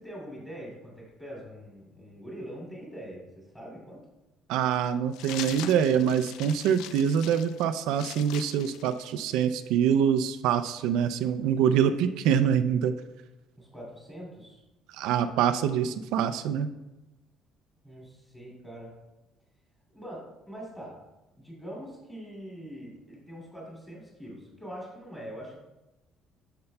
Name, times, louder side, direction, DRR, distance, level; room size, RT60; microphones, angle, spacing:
voice 1, 0.0-4.0 13.6-14.6 17.8-18.9 19.9-21.0 21.4-25.6, equal, 5° left, -4 dB, 2.5 m, -43 dB
voice 2, 4.5-12.9 14.9-16.7, right 8 dB, 80° right, 10 dB, 0.3 m, -25 dB
sound 1, 5.1-9.6, left 11 dB, 85° left, 0.4 m, -42 dB
9.5 x 6.7 x 2.2 m, 0.99 s
cardioid pair, 175°, 0 cm